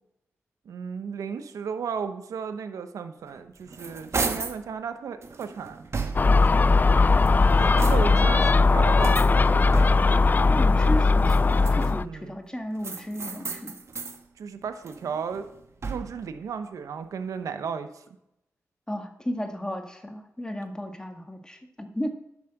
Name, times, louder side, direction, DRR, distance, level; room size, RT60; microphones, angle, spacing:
voice 1, 0.7-5.8 6.5-6.8 7.6-9.8 12.0-12.4 14.4-15.5 15.8-18.0, right 6 dB, 85° right, 9 dB, 0.9 m, -35 dB
sound 1, 3.3-4.6 5.2-6.5 7.1-8.3 9.0-10.2 11.1-12.2 12.8-14.2 14.6-16.3, right 4 dB, 55° right, 1.5 m, -35 dB
Gull seagull, 6.1-12.0, left 3 dB, 35° left, 0.3 m, -19 dB
voice 2, 10.5-13.8 18.9-22.1, equal, 15° left, 4 dB, 2.0 m, -34 dB
10.5 x 7.3 x 6.6 m, 0.82 s
cardioid pair, 65°, 6 cm